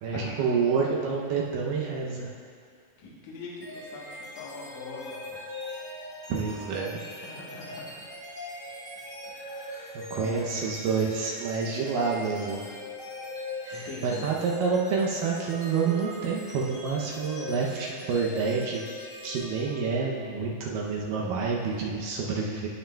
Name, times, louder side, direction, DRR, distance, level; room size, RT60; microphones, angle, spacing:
voice 1, 0.0-2.3 6.3-7.0 9.9-12.7 13.6-18.8 19.2-22.7, right 5 dB, 80° right, -2 dB, 2.0 m, -28 dB
voice 2, 3.0-5.4 6.5-6.6 7.2-8.0 9.2-10.8 13.7-14.3 21.6-21.8, left 3 dB, 65° left, -4 dB, 2.2 m, -43 dB
sound 1, 3.6-20.3, left 1 dB, 45° left, 1.0 m, -41 dB
16.0 x 5.7 x 2.3 m, 2.2 s
omnidirectional pair, 4.6 m